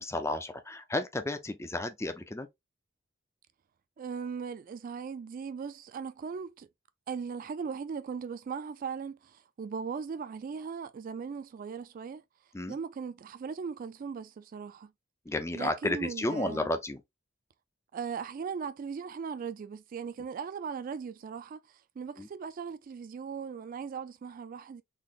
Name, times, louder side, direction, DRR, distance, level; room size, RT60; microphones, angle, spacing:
voice 1, 0.0-2.5 12.5-12.8 15.3-17.0 22.2-22.3, left 2 dB, 15° left, 0.5 m, -32 dB
voice 2, 4.0-6.7 7.1-12.2 12.7-14.9 15.5-16.7 17.9-24.8, right 6 dB, 45° right, 0.3 m, -38 dB
3.9 x 3.2 x 2.4 m
head